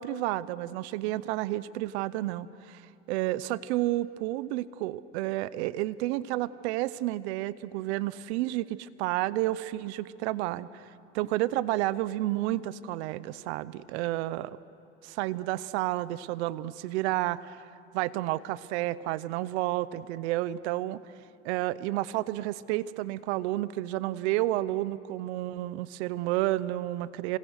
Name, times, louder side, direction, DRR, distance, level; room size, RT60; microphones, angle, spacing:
voice 1, 0.0-14.5 15.0-17.6 17.9-21.0 21.4-27.4, right 16 dB, 85° right, 18 dB, 0.8 m, -31 dB
27.0 x 20.5 x 6.6 m, 2.6 s
supercardioid pair, 100°, 32 cm